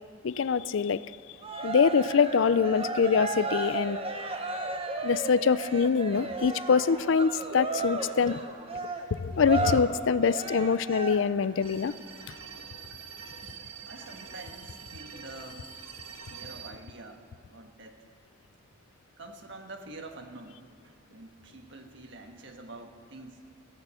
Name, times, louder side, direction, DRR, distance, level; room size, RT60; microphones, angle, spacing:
voice 1, 0.2-1.0 1.6-4.0 5.0-8.4 9.1-11.9, left 5 dB, 60° left, 16 dB, 0.4 m, -24 dB
Cheering, 1.4-11.5, right 3 dB, 30° right, 1.0 m, -34 dB
sound 1, 11.6-16.7, right 6 dB, 80° right, 1.6 m, -45 dB
voice 2, 13.8-15.8 16.3-18.0 19.2-23.5, right 2 dB, 60° right, 5 dB, 1.4 m, -47 dB
15.5 x 10.5 x 8.2 m, 2.2 s
head